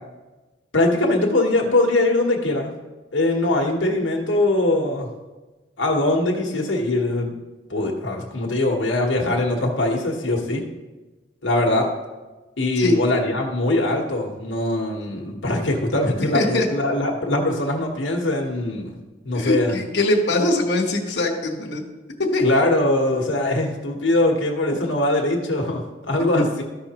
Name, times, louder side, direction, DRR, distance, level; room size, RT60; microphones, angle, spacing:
voice 1, 0.7-2.7 3.1-5.1 5.8-7.3 7.7-10.6 11.4-11.9 12.6-19.0 19.2-19.7 22.4-26.6, left 2 dB, 85° left, -1 dB, 1.2 m, -22 dB
voice 2, 16.3-16.7 19.3-21.8 22.3-22.4 26.3-26.4, left 2 dB, 65° left, -2 dB, 1.2 m, -22 dB
13.5 x 5.7 x 2.9 m, 1.2 s
head